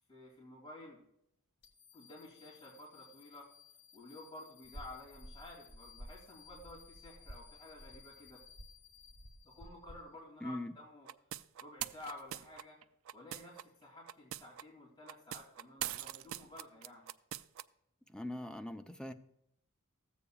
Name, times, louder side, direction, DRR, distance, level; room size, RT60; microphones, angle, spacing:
voice 1, 0.1-1.0 1.9-3.5 3.9-8.4 9.4-11.1 11.6-12.8 13.1-17.0, left 2 dB, 20° left, -6 dB, 2.5 m, -52 dB
sound 1, 1.6-10.1, left 9 dB, 50° left, 1.9 m, -61 dB
sound 2, 4.6-10.0, equal, 85° right, 1.2 m, -54 dB
voice 2, 10.4-10.7 18.1-19.1, left 1 dB, 5° left, 6 dB, 0.5 m, -41 dB
sound 3, 11.0-13.6 14.0-14.6 15.0-17.6, right 12 dB, 70° right, 0.3 m, -42 dB
14.5 x 8.3 x 2.3 m, 0.78 s
head